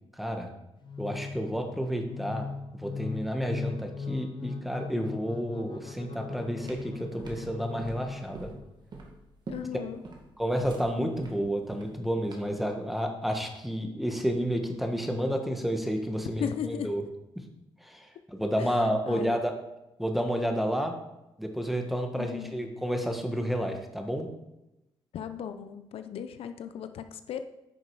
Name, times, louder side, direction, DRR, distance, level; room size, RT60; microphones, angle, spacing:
voice 1, 0.2-0.5 1.0-2.5 2.7-8.5 9.7-9.8 10.4-17.0 17.8-19.5 20.0-20.9 21.4-24.3, equal, ahead, 4 dB, 1.5 m, -30 dB
sound 1, 0.8-8.8, left 4 dB, 50° left, 0.9 m, -39 dB
sound 2, 6.2-12.7, right 3 dB, 50° right, 2.1 m, -45 dB
voice 2, 9.5-10.0 16.2-16.9 18.6-18.8 19.1-19.4 22.2-22.5 25.1-27.4, left 8 dB, 75° left, 9 dB, 0.6 m, -36 dB
9.7 x 6.0 x 4.8 m, 0.93 s
cardioid pair, 80°, 10 cm